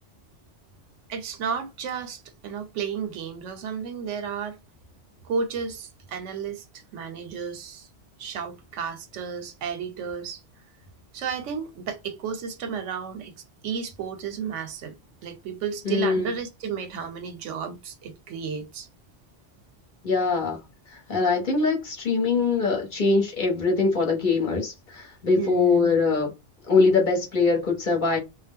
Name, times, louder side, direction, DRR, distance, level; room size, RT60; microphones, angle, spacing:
voice 1, 1.1-4.6 5.2-6.6 6.9-7.9 8.2-10.4 11.1-13.3 13.6-14.9 15.2-18.9 25.4-26.0, right 6 dB, 85° right, 1.0 m, -32 dB
voice 2, 15.8-16.3 20.0-20.6 20.9-26.3 26.7-28.2, left 4 dB, 45° left, 0.9 m, -22 dB
2.3 x 2.0 x 3.4 m
omnidirectional pair, 1.2 m